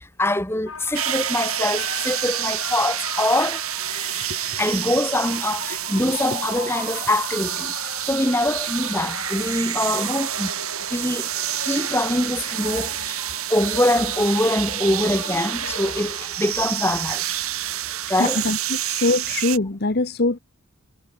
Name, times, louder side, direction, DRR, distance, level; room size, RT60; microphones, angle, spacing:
voice 1, 0.0-3.6 4.6-7.7 8.1-10.5 10.9-11.3 11.6-13.2 13.5-17.3 18.1-18.4, left 1 dB, 10° left, 1.8 m, -24 dB
sound 1, 0.7-16.3, left 4 dB, 70° left, 4.6 m, -37 dB
sound 2, 0.9-19.6, right 12 dB, 75° right, 4.1 m, -28 dB
voice 2, 18.2-20.4, left 2 dB, 45° left, 1.0 m, -23 dB
head